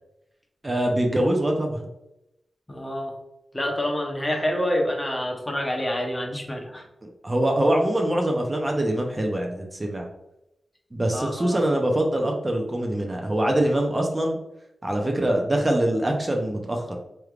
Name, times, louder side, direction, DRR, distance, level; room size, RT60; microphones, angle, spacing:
voice 1, 0.6-1.8 7.0-10.1 10.9-14.4 14.8-17.0, right 1 dB, 25° right, 1 dB, 0.7 m, -24 dB
voice 2, 2.7-3.1 3.5-6.9 11.1-11.6, left 1 dB, 20° left, 1 dB, 0.8 m, -27 dB
4.6 x 3.2 x 2.4 m, 0.89 s
wide cardioid pair, 80°, 0 cm